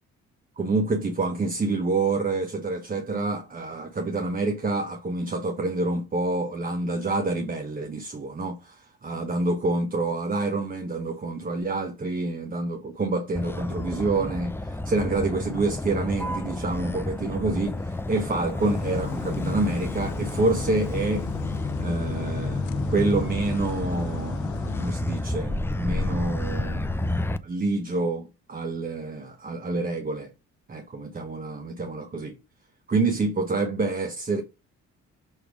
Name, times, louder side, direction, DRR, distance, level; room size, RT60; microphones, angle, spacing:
voice 1, 0.6-21.3 21.8-24.5 24.8-27.0 27.4-30.3 30.7-32.4 32.9-34.4, right 3 dB, 30° right, 0.9 m, -27 dB
Motor vehicle (road), 13.4-27.4, left 1 dB, 10° left, 0.5 m, -30 dB
sound 1, 18.6-24.9, left 11 dB, 75° left, 0.7 m, -36 dB
6.4 x 3.3 x 5.0 m
cardioid pair, 90°, 30 cm